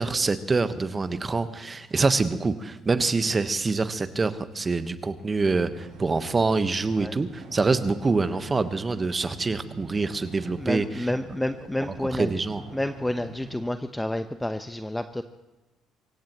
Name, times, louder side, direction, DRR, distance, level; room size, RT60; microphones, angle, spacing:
voice 1, 0.0-11.1 12.1-12.6, right 3 dB, 30° right, 11 dB, 1.2 m, -25 dB
sound 1, 5.4-13.6, right 4 dB, 80° right, 6.3 m, -45 dB
voice 2, 10.6-12.3 12.7-15.2, left 1 dB, 10° left, 9 dB, 0.8 m, -29 dB
24.5 x 16.5 x 3.0 m, 1.1 s
hypercardioid pair, 55°, 0 cm